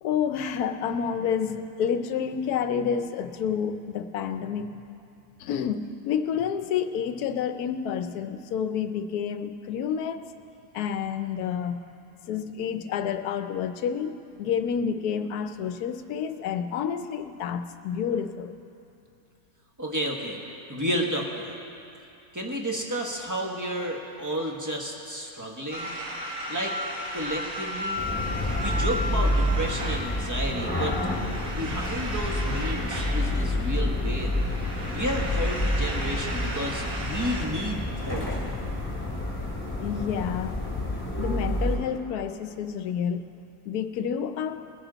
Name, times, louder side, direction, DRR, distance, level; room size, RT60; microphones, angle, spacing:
voice 1, 0.0-4.8 5.4-10.3 10.7-11.8 12.2-18.5 39.8-40.8 41.2-43.3 43.7-44.7, left 7 dB, 85° left, 9 dB, 1.2 m, -29 dB
voice 2, 19.8-20.4 20.7-21.6 22.3-26.0 26.5-26.7 27.1-28.0 28.6-30.9 31.6-34.4 34.9-38.3, equal, 15° right, 0 dB, 1.2 m, -31 dB
sound 1, 25.7-37.5, equal, 65° right, 2.0 m, -35 dB
sound 2, 28.0-41.8, left 1 dB, 10° left, 2.7 m, -28 dB
20.5 x 10.5 x 4.0 m, 2.8 s
omnidirectional pair, 1.6 m